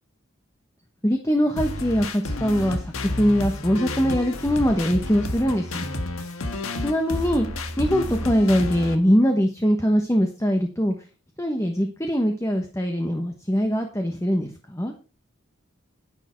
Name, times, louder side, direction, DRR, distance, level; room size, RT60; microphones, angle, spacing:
voice 1, 1.0-6.0 6.8-7.5 7.8-10.9 11.4-14.9, equal, 15° left, 4 dB, 1.1 m, -22 dB
sound 1, 1.6-9.0, left 2 dB, 90° left, 1.6 m, -30 dB
10.5 x 9.9 x 4.5 m, 0.35 s
head